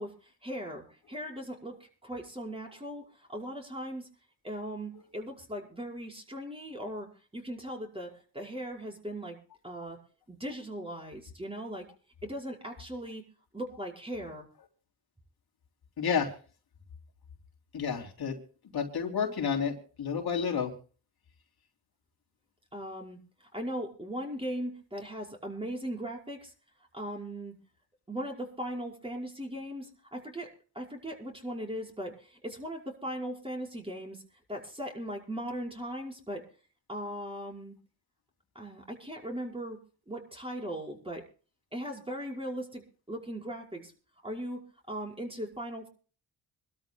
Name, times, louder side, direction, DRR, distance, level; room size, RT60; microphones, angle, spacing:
voice 1, 0.0-4.1 4.4-9.4 9.6-10.0 10.3-11.9 12.2-13.2 13.5-14.5 22.7-26.5 26.9-27.5 28.1-34.2 34.5-36.4 36.9-37.7 38.6-39.8 40.1-41.2 41.7-43.9 44.2-44.6 44.9-45.9, equal, 15° right, -1 dB, 5.3 m, -39 dB
voice 2, 16.0-16.3 17.7-18.4 18.7-20.7, left 6 dB, 60° left, 2 dB, 3.4 m, -30 dB
27.0 x 13.0 x 2.3 m, 0.39 s
cardioid pair, 95°, 41 cm